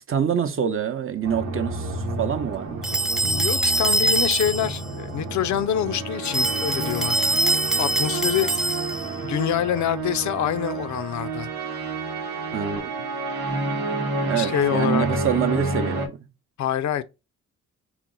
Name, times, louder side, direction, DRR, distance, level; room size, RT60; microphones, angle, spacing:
voice 1, 0.1-2.9 12.5-13.1 14.2-16.1, right 8 dB, 45° right, 0.7 m, -26 dB
sound 1, 1.2-16.1, right 2 dB, 85° right, 0.9 m, -30 dB
sound 2, 2.8-4.8 6.2-9.1, right 2 dB, ahead, 0.5 m, -24 dB
voice 2, 3.2-7.2 7.8-8.8 9.2-11.5 14.4-15.1 16.6-17.0, left 10 dB, 70° left, 0.5 m, -26 dB
4.4 x 2.0 x 3.7 m
cardioid pair, 70°, 30 cm